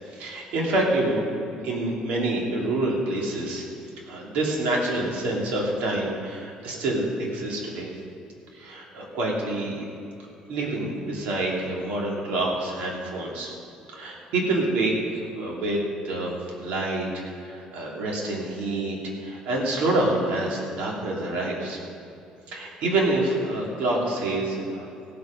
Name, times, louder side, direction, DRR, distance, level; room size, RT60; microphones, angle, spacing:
voice 1, 0.1-3.6 4.1-7.9 8.5-9.9 10.5-13.5 13.9-14.9 15.4-15.8 16.0-19.0 19.2-21.8 22.5-24.9, right 2 dB, 80° right, -2 dB, 3.0 m, -27 dB
16.5 x 8.0 x 5.2 m, 2.7 s
cardioid pair, 140°, 2 cm